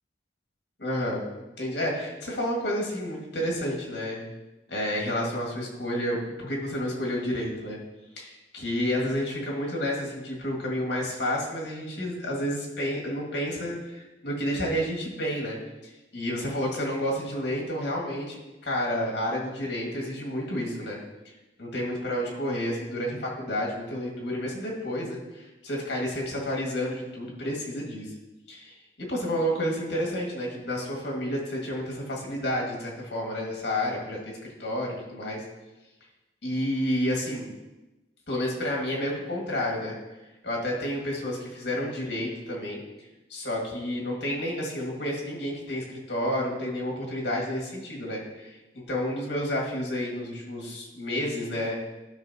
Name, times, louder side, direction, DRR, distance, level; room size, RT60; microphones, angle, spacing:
voice 1, 0.8-1.3 1.6-4.3 4.7-7.8 8.2-15.6 16.1-21.0 21.3-21.4 21.6-28.1 28.5-28.7 29.1-34.3 34.6-35.4 36.4-37.5 38.3-40.0 40.4-42.8 43.3-51.8, equal, 70° left, -2 dB, 1.9 m, -30 dB
11.5 x 5.5 x 2.8 m, 1.0 s
head